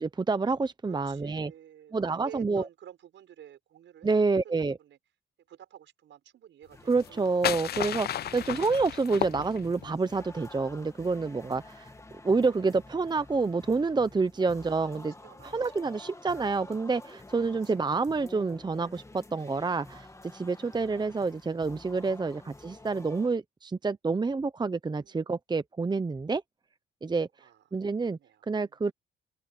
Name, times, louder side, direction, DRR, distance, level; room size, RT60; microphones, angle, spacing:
voice 1, 0.0-1.5 1.9-2.7 4.0-4.8 6.9-11.9 12.2-15.1 15.4-20.1 20.3-26.4 27.0-27.3 27.7-28.2 28.5-28.9, right 4 dB, 20° right, 0.9 m, -28 dB
voice 2, 0.8-5.0 5.5-7.3 8.1-8.5 14.4-14.9 15.2-16.5 17.6-17.9 20.9-21.1 25.0-25.4 27.4-27.6 28.1-28.9, right 10 dB, 70° right, 6.2 m, -52 dB
sound 1, 6.7-23.3, left 2 dB, 15° left, 2.3 m, -50 dB
sound 2, 6.9-10.0, left 11 dB, 55° left, 0.5 m, -33 dB
cardioid pair, 90°, 20 cm